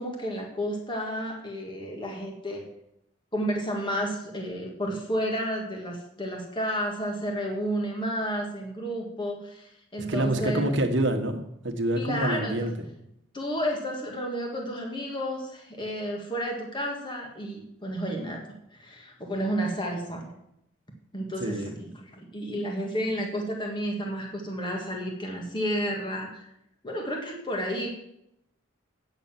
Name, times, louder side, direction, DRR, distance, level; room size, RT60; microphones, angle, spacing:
voice 1, 0.0-2.6 3.3-10.6 11.9-12.7 13.3-18.4 18.7-20.3 21.1-26.5 26.8-27.9, equal, 25° left, 0 dB, 1.7 m, -31 dB
voice 2, 10.1-12.7 21.4-21.7, right 1 dB, 65° right, 5 dB, 1.3 m, -27 dB
8.8 x 6.8 x 7.4 m, 0.78 s
head